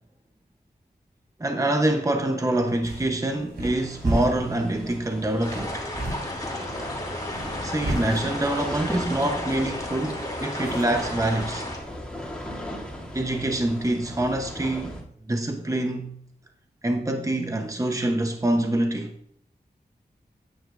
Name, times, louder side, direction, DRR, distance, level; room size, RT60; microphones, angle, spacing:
voice 1, 1.4-5.8 7.6-11.7 13.1-15.0 15.3-16.1 16.8-19.2, right 1 dB, 20° right, 0.9 m, -25 dB
sound 1, 2.6-11.1, right 1 dB, 80° right, 4.0 m, -35 dB
sound 2, 3.7-15.0, left 1 dB, 5° left, 2.6 m, -38 dB
sound 3, 5.4-11.8, left 1 dB, 25° left, 2.8 m, -34 dB
12.5 x 9.6 x 2.5 m
wide cardioid pair, 80°, 16 cm